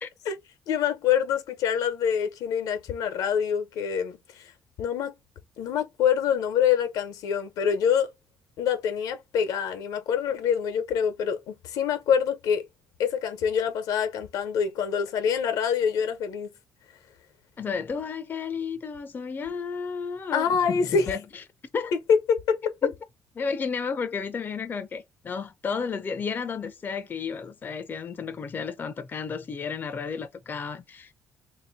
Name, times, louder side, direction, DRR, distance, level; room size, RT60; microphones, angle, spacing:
voice 1, 0.7-4.5 4.8-5.1 5.6-8.1 8.6-12.6 13.0-16.5 20.3-21.1 21.9-22.0 22.3-22.6, left 7 dB, 90° left, 1.0 m, -26 dB
voice 2, 17.6-21.4 21.7-21.9 22.8-22.9 23.4-31.1, left 5 dB, 30° left, 0.5 m, -32 dB
3.1 x 2.8 x 4.1 m
cardioid pair, 125°, 6 cm